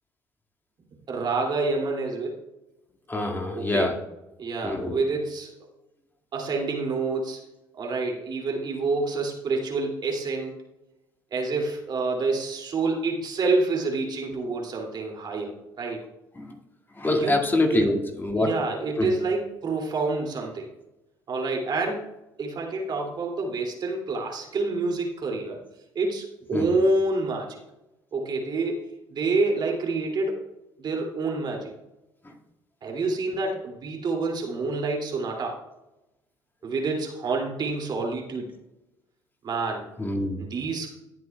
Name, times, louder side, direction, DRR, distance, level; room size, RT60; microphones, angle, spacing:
voice 1, 1.1-2.4 3.5-3.9 4.4-5.5 6.3-7.4 7.8-10.6 11.3-16.0 17.1-17.4 17.7-17.9 18.4-20.7 21.3-22.0 22.4-25.6 25.9-27.6 28.1-28.8 29.1-30.4 30.8-31.7 32.8-35.6 36.6-38.5 39.4-39.9 40.4-40.9, right 3 dB, 50° right, 0 dB, 2.6 m, -27 dB
voice 2, 3.1-3.9 4.6-5.0 16.4-16.5 17.0-18.5 19.0-19.1 26.5-26.6 40.0-40.4, left 2 dB, 25° left, 2 dB, 2.0 m, -25 dB
18.0 x 7.9 x 2.3 m, 0.97 s
hypercardioid pair, 60°, 9 cm